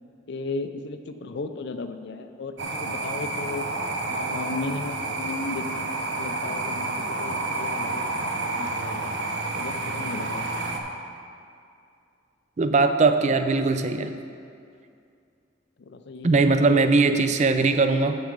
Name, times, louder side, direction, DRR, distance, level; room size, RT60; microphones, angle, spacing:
voice 1, 0.3-3.7 4.1-9.1 9.6-10.5 15.8-16.9, left 3 dB, 60° left, 8 dB, 0.5 m, -35 dB
sound 1, 2.6-10.8, right 2 dB, 65° right, 0.8 m, -29 dB
voice 2, 12.6-14.2 16.2-18.2, right 3 dB, 40° right, 9 dB, 0.4 m, -20 dB
8.0 x 7.1 x 5.2 m, 2.4 s
head